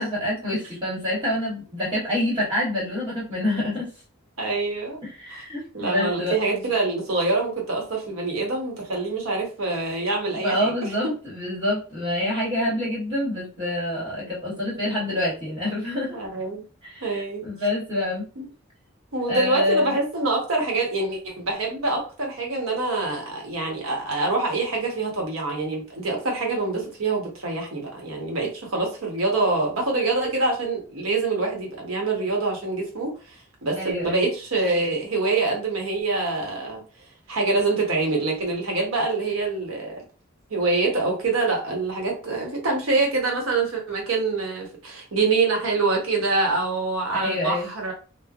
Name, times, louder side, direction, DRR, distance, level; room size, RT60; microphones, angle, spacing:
voice 1, 0.0-3.9 5.0-6.3 10.4-16.2 16.8-18.3 19.3-20.0 33.8-34.2 47.1-47.7, left 1 dB, 25° right, -7 dB, 1.0 m, -26 dB
voice 2, 4.4-5.0 5.3-5.4 5.7-10.9 16.1-16.6 17.0-17.4 18.4-18.5 19.1-33.4 33.6-36.8 37.3-40.0 40.5-47.9, right 3 dB, 90° right, 0 dB, 1.0 m, -25 dB
3.0 x 2.0 x 2.4 m, 0.36 s
head